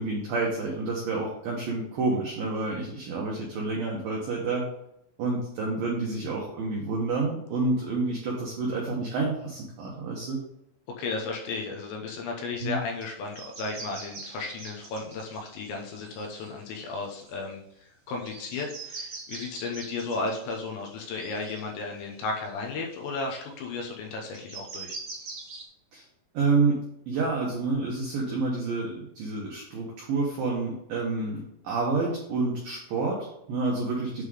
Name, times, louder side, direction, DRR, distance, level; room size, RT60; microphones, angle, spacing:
voice 1, 0.0-4.7 5.2-10.4 12.6-12.8 25.9-26.0 26.3-26.8 27.1-34.2, right 3 dB, 80° right, -2 dB, 2.1 m, -29 dB
voice 2, 11.0-25.0, left 3 dB, 75° left, 0 dB, 2.9 m, -34 dB
sound 1, 13.0-13.1 13.3-17.5 18.2-22.8 23.3-23.4 24.3-25.6, right 4 dB, 60° right, 1.5 m, -43 dB
8.2 x 3.7 x 4.9 m, 0.79 s
omnidirectional pair, 5.7 m